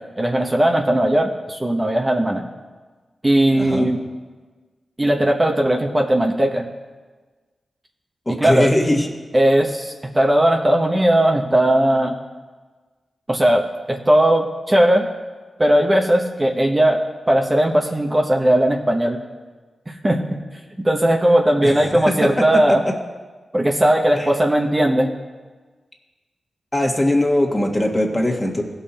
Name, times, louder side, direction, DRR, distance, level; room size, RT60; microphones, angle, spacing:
voice 1, 0.2-2.4 3.2-4.0 5.0-6.7 8.3-8.7 9.3-12.2 13.3-15.1 15.6-19.2 19.9-20.2 20.8-22.8 23.5-25.1, right 1 dB, 25° right, 1 dB, 1.1 m, -18 dB
voice 2, 3.5-3.9 8.3-9.1 21.6-22.8 24.2-24.3 26.7-28.6, left 1 dB, 20° left, 1 dB, 1.8 m, -20 dB
16.5 x 5.7 x 4.3 m, 1.3 s
cardioid pair, 45°, 0 cm